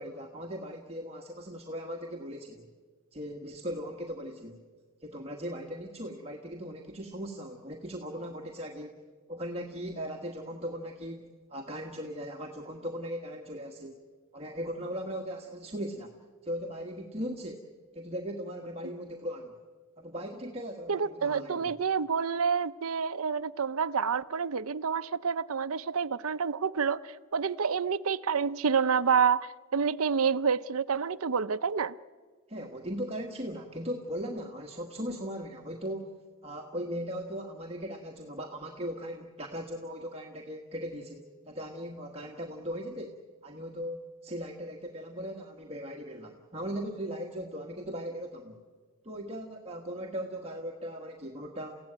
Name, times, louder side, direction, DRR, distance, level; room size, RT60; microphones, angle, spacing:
voice 1, 0.0-2.7 3.1-4.6 5.0-8.9 9.3-14.0 14.3-16.2 16.4-17.6 17.9-19.5 20.0-21.7 32.5-36.1 36.4-43.1 43.4-48.6 49.0-51.8, equal, 25° right, 1 dB, 1.5 m, -38 dB
voice 2, 20.9-31.9, right 6 dB, 70° right, 15 dB, 0.7 m, -28 dB
29.5 x 16.0 x 9.0 m, 1.5 s
head